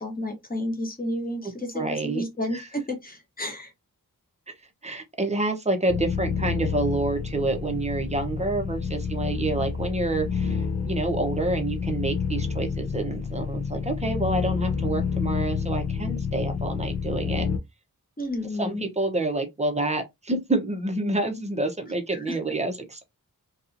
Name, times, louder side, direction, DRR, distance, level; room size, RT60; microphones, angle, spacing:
voice 1, 0.0-3.7 18.2-18.8 22.1-22.3, left 1 dB, 25° left, 1.0 m, -31 dB
voice 2, 1.7-2.2 2.5-2.6 4.8-17.5 18.6-23.0, right 2 dB, 20° right, 0.6 m, -28 dB
sound 1, 5.9-17.6, left 6 dB, 50° left, 0.4 m, -29 dB
2.8 x 2.3 x 2.4 m
wide cardioid pair, 95°, 36 cm